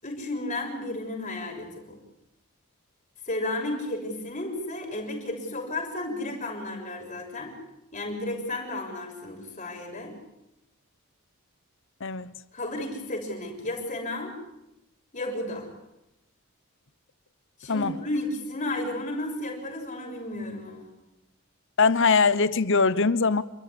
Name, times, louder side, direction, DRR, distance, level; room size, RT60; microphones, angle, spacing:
voice 1, 0.0-2.0 3.3-7.5 7.9-10.1 12.5-14.3 15.1-15.7 17.6-20.9, left 1 dB, 35° left, 6.8 m, -33 dB
voice 2, 12.0-12.3 17.7-18.0 21.8-23.4, left 4 dB, 60° left, 1.0 m, -22 dB
29.0 x 13.5 x 9.8 m
head